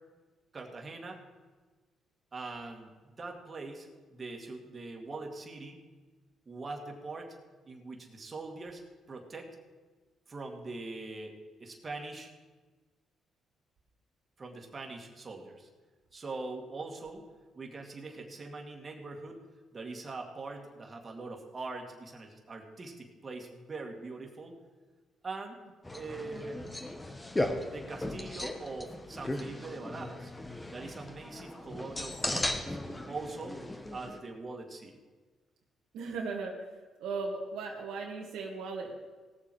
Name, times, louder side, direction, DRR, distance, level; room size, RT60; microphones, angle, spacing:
voice 1, 0.5-1.2 2.3-5.8 6.5-7.4 7.7-9.5 10.3-11.3 11.6-12.3 14.4-15.7 16.1-17.2 17.5-19.4 19.7-24.6 25.2-25.6 25.9-26.8 27.7-30.3 30.7-32.8 33.1-33.6 33.9-35.0, right 3 dB, 35° right, 2 dB, 2.1 m, -42 dB
sound 1, 25.8-34.2, left 1 dB, 15° left, 1.2 m, -37 dB
voice 2, 35.9-36.5 37.0-38.9, right 4 dB, 85° right, -1 dB, 1.6 m, -37 dB
18.0 x 7.2 x 4.8 m, 1.3 s
cardioid pair, 90°, 0 cm